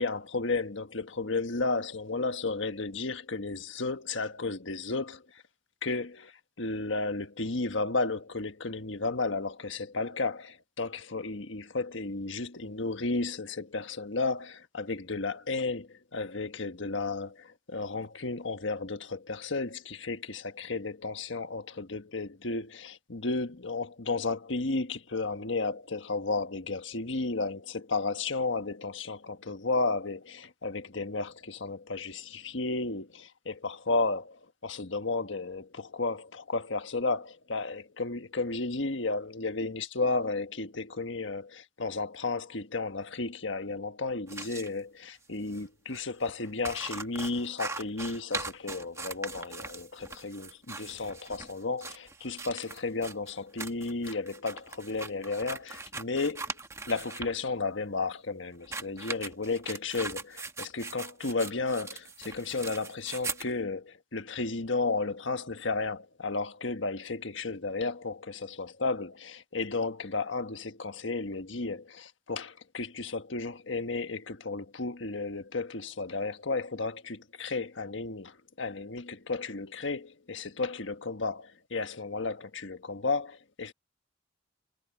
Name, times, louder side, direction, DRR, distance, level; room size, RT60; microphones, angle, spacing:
voice 1, 0.0-5.4 5.8-56.5 56.9-83.7, left 3 dB, 70° left, 1.5 m, -33 dB
sound 1, 44.3-44.7 45.5-45.6 45.9-46.0 46.2-57.3 58.6-63.5, right 3 dB, 15° right, 1.0 m, -40 dB
head